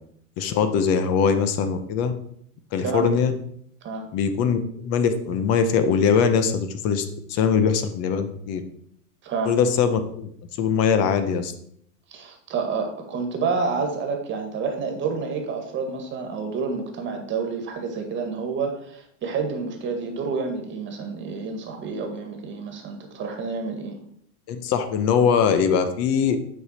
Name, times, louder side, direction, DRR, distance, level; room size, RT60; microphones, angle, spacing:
voice 1, 0.4-2.1 2.7-3.3 4.1-8.6 9.4-10.3 10.6-11.5 24.5-26.4, left 6 dB, 35° left, 9 dB, 0.9 m, -22 dB
voice 2, 9.2-9.6 12.1-24.0, right 5 dB, 25° right, 4 dB, 1.7 m, -29 dB
7.7 x 5.3 x 4.4 m, 0.67 s
hypercardioid pair, 130°, 45 cm